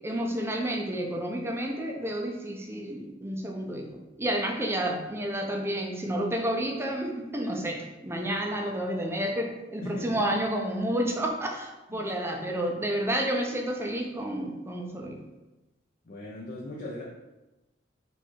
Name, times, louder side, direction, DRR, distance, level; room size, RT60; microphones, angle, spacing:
voice 1, 0.0-15.2, right 1 dB, 15° right, 1 dB, 0.5 m, -30 dB
voice 2, 9.8-10.3 11.9-12.1 16.0-17.0, left 1 dB, 50° left, -5 dB, 0.7 m, -38 dB
4.1 x 2.5 x 4.5 m, 1.1 s
head